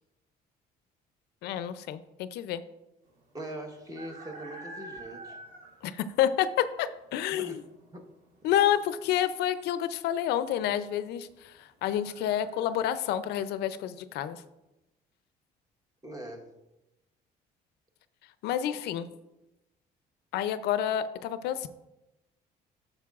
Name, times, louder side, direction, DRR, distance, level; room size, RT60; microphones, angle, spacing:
voice 1, 1.4-2.6 5.8-7.6 8.4-14.4 18.4-19.1 20.3-21.7, left 11 dB, 80° left, 13 dB, 0.4 m, -29 dB
Farm at dawn roosters and tawny owl, 3.0-12.8, right 2 dB, 65° right, 2.7 m, -49 dB
voice 2, 3.3-5.4 7.3-7.6 7.9-8.1 16.0-16.5, right 1 dB, 20° right, 2 dB, 1.2 m, -41 dB
10.5 x 6.6 x 2.4 m, 0.97 s
cardioid pair, 110°, 17 cm